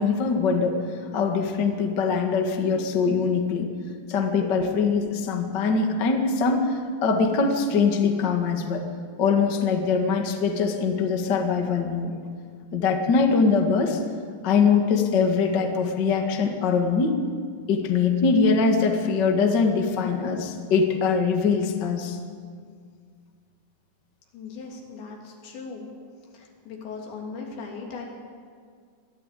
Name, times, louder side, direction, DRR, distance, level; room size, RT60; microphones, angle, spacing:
voice 1, 0.0-3.7 4.1-8.8 9.2-12.1 12.7-14.0 14.4-17.2 17.7-22.2, left 5 dB, 50° left, 3 dB, 1.3 m, -22 dB
voice 2, 24.3-25.9 26.3-28.1, left 4 dB, 80° left, 0 dB, 5.2 m, -38 dB
22.5 x 14.0 x 8.4 m, 2.1 s
omnidirectional pair, 5.1 m